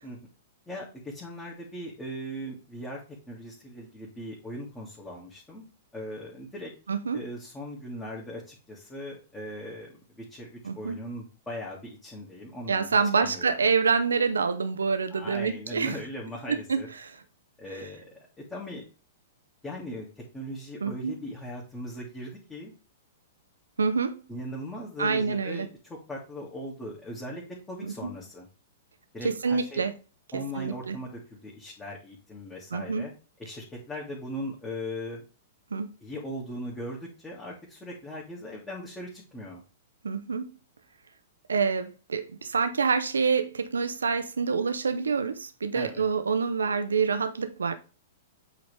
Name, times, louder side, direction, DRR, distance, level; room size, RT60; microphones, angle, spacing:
voice 1, 0.7-3.0 3.3-5.6 5.9-6.7 7.1-9.9 10.2-12.9 13.2-13.5 15.1-16.9 17.6-18.8 19.6-22.7 24.3-27.4 27.7-28.5 29.1-29.8 30.3-33.1 33.4-35.2 36.0-39.6 45.7-46.0, equal, 10° left, 2.1 m, -39 dB
voice 2, 6.9-7.2 10.6-11.0 12.7-16.0 16.5-17.2 17.7-17.9 20.8-21.1 23.8-24.2 25.0-25.7 27.8-28.1 29.2-29.9 30.6-31.0 32.7-33.1 35.7-35.9 40.0-40.5 41.5-47.7, right 5 dB, 70° right, 0.8 m, -27 dB
8.2 x 4.0 x 3.3 m
figure-of-eight pair, 105°, 0 cm